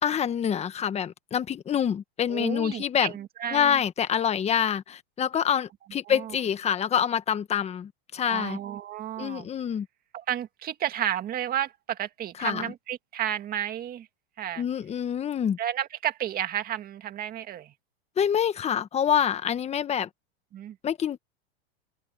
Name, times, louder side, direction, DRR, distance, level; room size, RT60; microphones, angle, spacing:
voice 1, 0.0-3.1 3.5-8.6 9.2-9.9 12.4-12.7 14.6-15.6 18.2-20.1 20.8-21.2, left 8 dB, 20° left, 1.3 m, -26 dB
voice 2, 2.3-3.8 6.1-6.4 8.3-9.5 10.1-14.1 14.4-14.6 15.6-17.7 20.5-20.8, right 11 dB, 30° right, 2.1 m, -32 dB
supercardioid pair, 135°, 31 cm